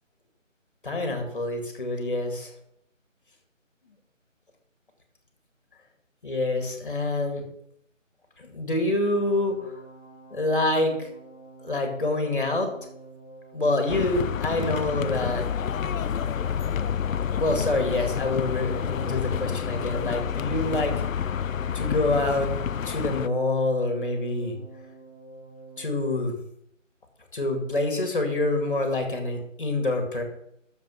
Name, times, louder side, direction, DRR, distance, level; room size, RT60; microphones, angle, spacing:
voice 1, 0.8-2.5 6.2-7.4 8.4-9.7 10.3-11.1 11.6-12.7 13.5-15.4 17.3-20.9 21.7-22.5 22.8-24.6 25.8-26.4 27.3-30.2, left 2 dB, 40° left, 4 dB, 2.3 m, -26 dB
sound 1, 9.1-25.9, right 3 dB, 25° right, 1.8 m, -47 dB
sound 2, 13.9-23.3, left 8 dB, 80° left, 0.5 m, -29 dB
9.3 x 7.2 x 5.7 m, 0.76 s
figure-of-eight pair, 175°, 39 cm